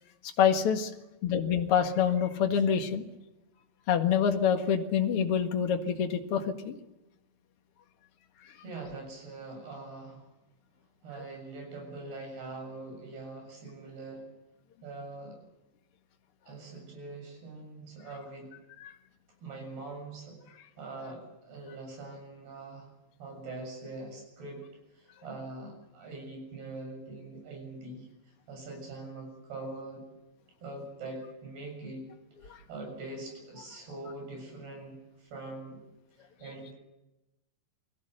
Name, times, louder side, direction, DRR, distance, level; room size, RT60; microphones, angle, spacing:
voice 1, 0.4-0.9 1.2-3.0 3.9-6.8, left 8 dB, 45° left, 4 dB, 2.1 m, -26 dB
voice 2, 8.6-10.2 11.0-14.3 14.8-15.4 16.5-18.5 19.4-20.4 20.8-22.9 23.2-24.6 24.9-28.1 28.5-30.0 30.6-32.1 32.4-35.8 36.2-36.7, right 2 dB, 85° right, 3 dB, 9.3 m, -43 dB
28.5 x 20.0 x 6.7 m, 0.96 s
omnidirectional pair, 4.5 m